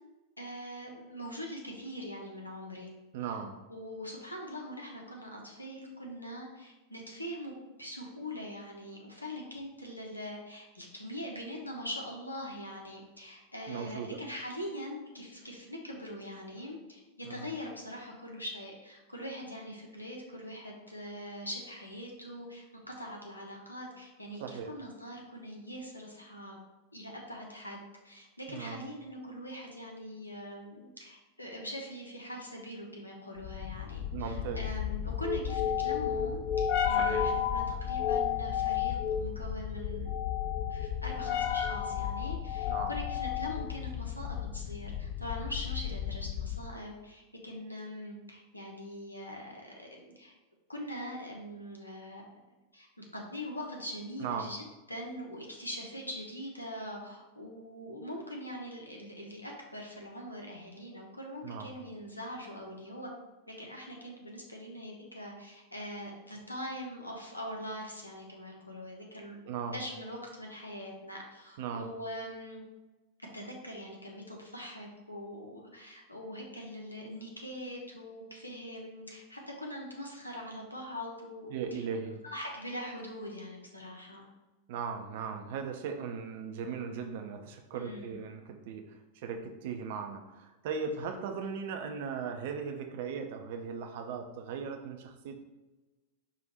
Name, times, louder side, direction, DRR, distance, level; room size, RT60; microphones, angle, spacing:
voice 1, 0.4-2.9 3.7-26.6 26.9-27.8 28.0-40.1 40.7-50.3 50.7-52.4 52.7-54.6 54.9-63.1 63.5-69.4 69.7-72.6 73.3-84.3 87.7-88.2, equal, 85° left, 0 dB, 0.9 m, -42 dB
voice 2, 3.1-3.6 13.7-14.2 17.2-17.5 24.4-24.7 28.5-28.8 34.1-34.6 36.9-37.3 42.7-43.0 54.2-54.5 61.4-61.8 69.4-69.8 71.6-71.9 81.5-82.2 84.7-95.4, right 6 dB, 50° right, 5 dB, 0.6 m, -38 dB
sound 1, 33.4-46.8, left 9 dB, 40° left, 0.5 m, -32 dB
5.0 x 2.5 x 4.2 m, 1.1 s
figure-of-eight pair, 90°, 0 cm